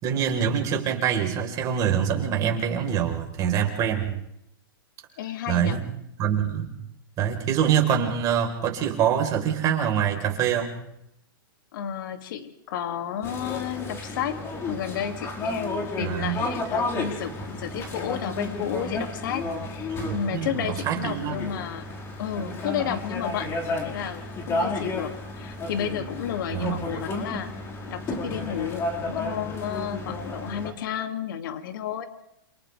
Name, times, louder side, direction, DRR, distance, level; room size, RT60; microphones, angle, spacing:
voice 1, 0.0-4.1 5.5-5.9 6.2-6.8 7.2-10.8 16.0-16.4 20.0-21.4 26.5-26.8, right 8 dB, 30° right, 2 dB, 4.4 m, -25 dB
voice 2, 5.2-5.8 11.7-14.4 14.7-21.8 22.2-27.5 27.9-32.0, left 9 dB, 60° left, 6 dB, 2.6 m, -32 dB
sound 1, 13.2-30.7, left 2 dB, 20° left, 4.8 m, -32 dB
28.5 x 28.0 x 3.5 m, 0.78 s
hypercardioid pair, 140°, 12 cm